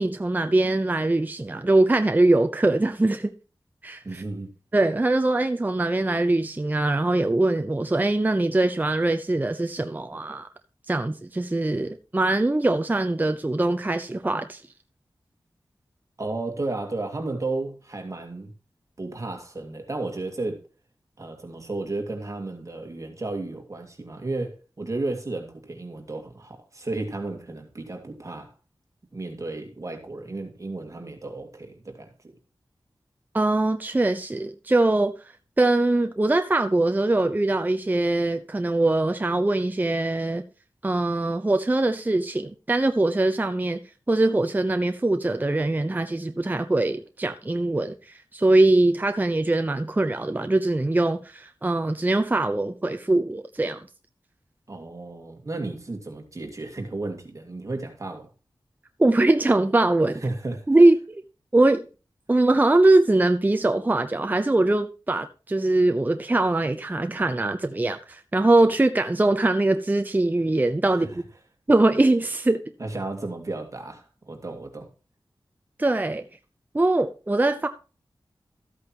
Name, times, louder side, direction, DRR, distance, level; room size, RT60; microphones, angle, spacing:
voice 1, 0.0-3.3 3.8-4.2 4.7-10.5 10.9-14.6 33.3-35.1 35.6-40.4 40.8-43.8 44.1-53.8 59.0-60.2 60.7-61.2 61.5-61.8 62.3-71.2 71.7-72.6 75.8-76.3 76.7-77.7, right 2 dB, 20° right, 0.7 m, -22 dB
voice 2, 4.0-4.5 16.2-18.5 19.0-20.6 21.2-28.5 29.1-32.1 54.7-58.3 60.1-60.7 70.9-71.2 72.8-74.9, right 2 dB, 40° right, 2.2 m, -33 dB
13.5 x 8.5 x 3.0 m
wide cardioid pair, 100°, 8 cm